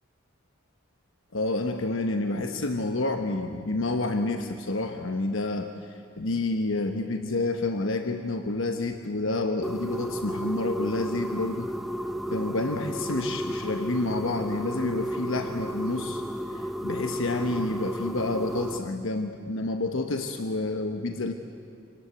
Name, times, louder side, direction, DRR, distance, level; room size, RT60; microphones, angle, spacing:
voice 1, 1.3-11.7 12.3-16.2 16.5-21.3, left 2 dB, 65° left, 6 dB, 1.1 m, -29 dB
sound 1, 9.6-18.8, equal, ahead, 0.7 m, -33 dB
26.5 x 19.0 x 8.1 m, 2.3 s
head